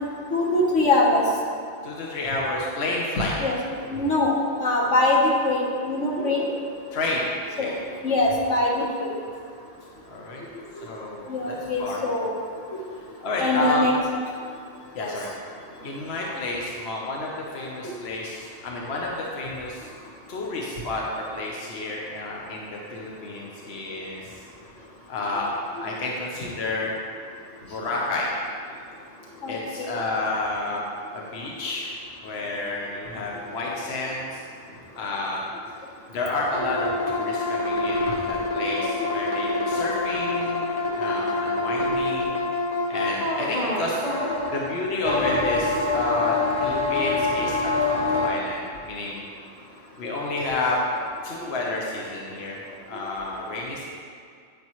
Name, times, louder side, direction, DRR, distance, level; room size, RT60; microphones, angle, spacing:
voice 1, 0.3-1.2 3.4-3.6 3.9-4.3 4.6-6.5 7.6-7.7 8.0-9.1 11.3-12.3 13.4-13.9 15.0-15.1 29.4-29.6 29.9-30.0, left 2 dB, 75° left, -2 dB, 1.6 m, -22 dB
voice 2, 1.8-3.3 6.9-7.3 7.6-7.8 10.0-10.4 10.8-12.0 13.2-13.9 14.9-15.3 15.8-19.9 20.3-24.3 25.1-26.9 27.6-28.3 29.5-30.9 31.1-31.9 32.2-34.4 35.0-35.4 36.1-40.6 40.9-42.5 42.9-44.0 44.5-49.3 50.0-50.8 51.2-52.6 52.9-53.8, left 2 dB, 60° left, -3 dB, 1.2 m, -30 dB
sound 1, 36.5-48.3, left 3 dB, 35° left, 1.2 m, -26 dB
9.7 x 9.1 x 3.1 m, 2.2 s
omnidirectional pair, 1.3 m